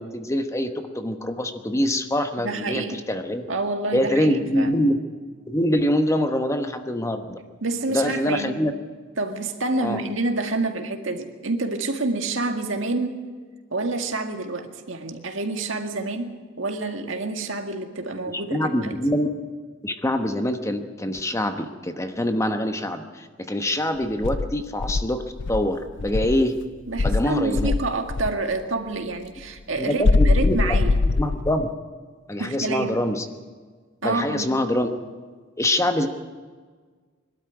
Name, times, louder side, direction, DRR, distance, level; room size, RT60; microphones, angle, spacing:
voice 1, 0.0-3.4 3.9-5.0 5.5-7.4 7.9-8.7 9.8-10.0 18.3-19.3 19.8-25.2 25.5-26.6 27.0-27.7 29.8-31.7 32.3-33.3 34.0-35.0 35.6-36.1, left 1 dB, 15° left, 7 dB, 1.1 m, -24 dB
voice 2, 2.4-3.0 3.5-4.8 7.6-8.6 9.2-13.2 13.7-18.9 26.9-31.0 32.4-33.0 34.0-34.5, right 2 dB, 70° right, 5 dB, 1.9 m, -28 dB
Insect, 24.2-26.5 27.0-28.4 30.0-31.7, left 3 dB, 65° left, 0.5 m, -22 dB
22.5 x 12.5 x 9.4 m, 1.5 s
head